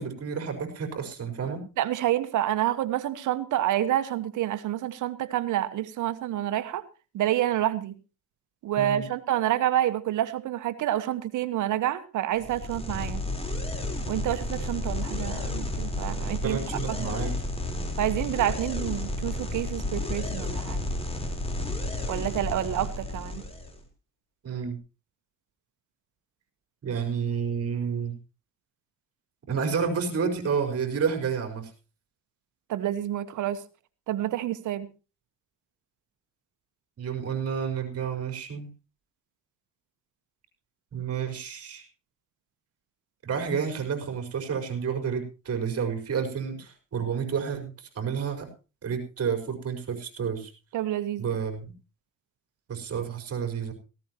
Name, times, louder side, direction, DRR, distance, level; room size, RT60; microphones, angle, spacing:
voice 1, 0.0-1.6 8.8-9.0 16.4-17.3 24.4-24.8 26.8-28.2 29.5-31.7 37.0-38.7 40.9-41.9 43.2-48.5 48.8-50.5 51.2-51.7 52.7-53.7, right 6 dB, 50° right, 5 dB, 5.0 m, -30 dB
voice 2, 1.8-6.8 7.1-7.9 8.6-13.2 14.1-16.6 16.9-17.1 18.0-20.9 22.1-23.4 32.7-33.6 34.1-34.9 50.7-51.2, right 12 dB, 80° right, 12 dB, 1.4 m, -28 dB
sound 1, 12.4-23.8, left 1 dB, 20° left, 4.2 m, -32 dB
17.5 x 16.0 x 3.0 m, 0.32 s
cardioid pair, 90°, 30 cm